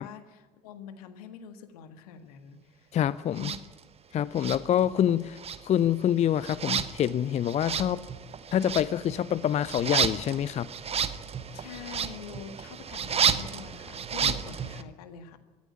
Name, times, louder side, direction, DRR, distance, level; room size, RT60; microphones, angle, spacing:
voice 1, 0.0-2.9 3.3-3.6 11.5-15.4, left 7 dB, 65° left, 8 dB, 1.7 m, -45 dB
voice 2, 2.9-3.5 4.1-5.4 5.6-8.0 8.5-10.7 14.2-14.3, left 10 dB, 35° left, 18 dB, 0.5 m, -26 dB
sound 1, 3.4-3.6 4.4-5.1 5.4-14.8, right 7 dB, 30° right, 1.2 m, -32 dB
24.0 x 11.5 x 10.0 m, 1.3 s
figure-of-eight pair, 55°, 20 cm